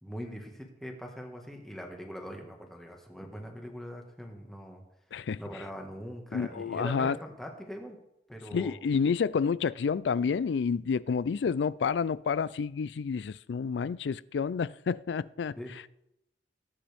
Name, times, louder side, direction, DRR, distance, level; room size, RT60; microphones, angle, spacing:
voice 1, 0.0-4.8 5.4-8.0 8.3-8.8 15.6-15.7, equal, ahead, 1.6 m, -42 dB
voice 2, 5.1-5.4 6.3-7.2 8.5-15.8, left 6 dB, 85° left, 0.4 m, -29 dB
18.5 x 8.7 x 3.5 m
head